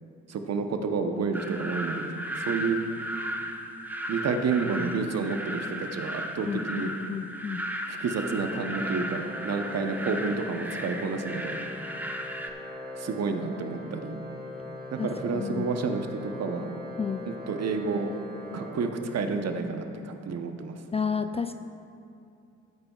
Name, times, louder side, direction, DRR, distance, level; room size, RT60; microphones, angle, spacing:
voice 1, 0.3-2.8 4.1-6.9 7.9-11.7 13.0-14.2 14.9-16.7 17.5-18.1 18.5-20.8, right 4 dB, 55° right, 6 dB, 1.0 m, -30 dB
sound 1, 1.3-12.5, equal, 5° right, 0.9 m, -35 dB
voice 2, 6.5-7.6 15.0-15.8 17.0-17.3 20.9-21.5, left 6 dB, 20° left, 9 dB, 0.3 m, -31 dB
Organ, 8.6-19.5, left 1 dB, 30° right, 1.9 m, -41 dB
14.5 x 8.7 x 2.4 m, 2.6 s
hypercardioid pair, 50°, 31 cm